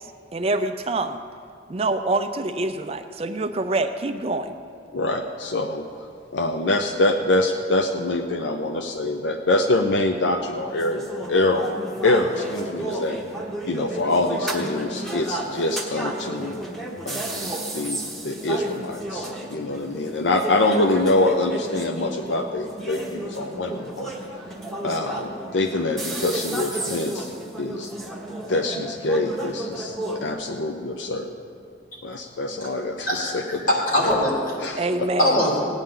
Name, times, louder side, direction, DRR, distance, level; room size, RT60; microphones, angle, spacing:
voice 1, 0.3-1.2 1.7-4.5 34.8-35.4, right 2 dB, 30° right, 8 dB, 0.4 m, -25 dB
voice 2, 4.9-5.8 6.3-11.7 12.0-13.2 13.6-16.6 17.0-24.1 24.8-27.3 27.6-27.9 28.5-31.3 32.0-33.7 34.6-35.1, left 2 dB, 75° left, 5 dB, 0.6 m, -25 dB
sound 1, 10.7-30.3, right 1 dB, ahead, 1.0 m, -33 dB
voice 3, 33.1-34.6 35.2-35.6, left 1 dB, 45° left, -4 dB, 2.8 m, -22 dB
17.5 x 9.0 x 3.8 m, 2.3 s
head